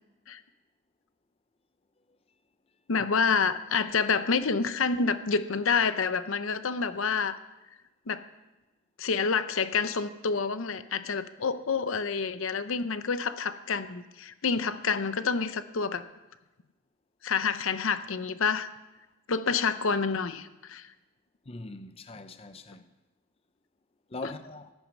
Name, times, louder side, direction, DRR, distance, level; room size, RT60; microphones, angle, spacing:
voice 1, 2.9-7.3 8.1-8.2 9.0-16.0 17.2-18.7 19.3-20.9 24.2-24.3, left 5 dB, 80° left, 0.7 m, -28 dB
voice 2, 21.5-22.9 24.1-24.7, left 2 dB, 30° left, 0.6 m, -41 dB
14.5 x 10.5 x 6.1 m
head